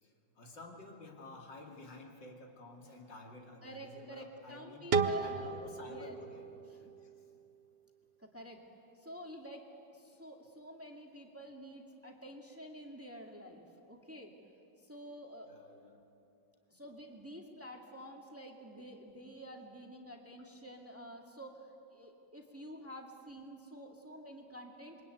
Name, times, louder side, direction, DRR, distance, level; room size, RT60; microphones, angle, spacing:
voice 1, 0.0-4.8 5.2-6.4 7.0-7.1 15.5-16.0, left 2 dB, 75° left, 0 dB, 3.4 m, -51 dB
voice 2, 3.6-5.5 5.9-6.2 6.7-6.9 8.2-8.6 9.0-14.3 14.8-15.5 16.7-25.1, equal, 5° right, 1 dB, 2.2 m, -49 dB
sound 1, 4.9-7.8, right 5 dB, 45° right, 0.9 m, -35 dB
27.0 x 23.5 x 9.3 m, 2.8 s
omnidirectional pair, 2.0 m